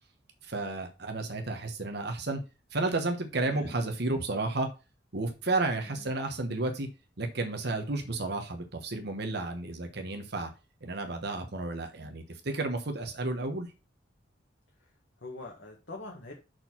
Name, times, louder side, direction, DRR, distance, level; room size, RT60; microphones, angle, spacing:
voice 1, 0.4-2.4 2.7-4.7 5.1-6.9 7.2-10.5 10.8-13.7, right 2 dB, 65° right, 5 dB, 1.2 m, -32 dB
voice 2, 15.2-16.3, left 2 dB, 70° left, -2 dB, 1.8 m, -44 dB
6.4 x 4.5 x 5.9 m, 0.29 s
head